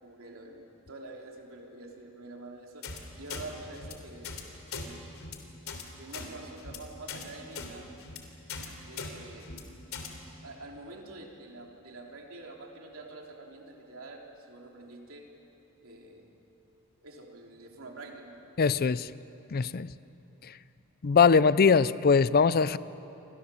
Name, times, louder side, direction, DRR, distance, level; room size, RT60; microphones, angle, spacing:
voice 1, 0.0-2.9 3.2-5.3 6.0-7.9 8.9-9.5 10.4-15.3 15.8-16.3 17.0-18.4, right 2 dB, 65° right, 0 dB, 3.6 m, -46 dB
sound 1, 2.8-3.0 3.3-3.4 3.7-3.9 4.2-4.4 4.7-4.9 5.2-5.4 5.7-5.8 6.1-6.3 6.6-6.8 7.1-7.2 7.5-7.7 8.0-8.2 8.5-8.7 9.0-9.1 9.4-9.6 9.9-10.1, left 5 dB, 70° left, 3.2 m, -39 dB
voice 2, 18.6-19.1 19.5-19.9 21.0-22.8, left 5 dB, 45° left, 17 dB, 0.5 m, -22 dB
29.0 x 25.0 x 7.2 m, 3.0 s
head